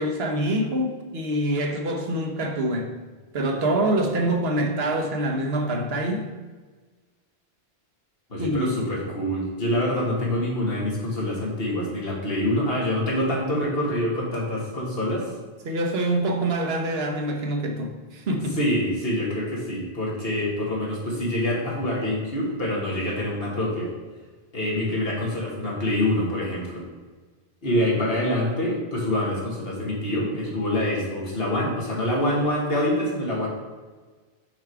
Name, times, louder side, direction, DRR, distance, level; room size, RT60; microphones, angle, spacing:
voice 1, 0.0-2.9 3.3-6.3 8.4-8.7 15.6-18.6, right 1 dB, 75° right, 3 dB, 1.1 m, -25 dB
voice 2, 8.3-15.3 18.5-23.9 24.5-26.8 27.6-33.5, left 1 dB, 65° left, -4 dB, 1.9 m, -26 dB
5.7 x 4.7 x 4.5 m, 1.4 s
omnidirectional pair, 1.1 m